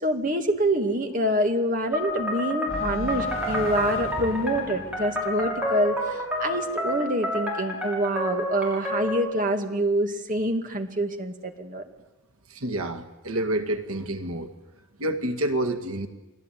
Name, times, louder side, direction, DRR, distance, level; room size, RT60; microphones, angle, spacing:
voice 1, 0.0-11.8, right 1 dB, 35° right, 5 dB, 2.3 m, -26 dB
sound 1, 1.9-9.3, left 1 dB, 5° right, 6.9 m, -29 dB
sound 2, 2.1-4.2, left 1 dB, 70° left, 4.1 m, -37 dB
sound 3, 2.7-7.3, left 1 dB, 30° left, 4.6 m, -40 dB
voice 2, 12.5-14.5 15.0-16.1, right 1 dB, 85° right, 6 dB, 2.0 m, -28 dB
29.0 x 19.5 x 9.3 m, 1.1 s
head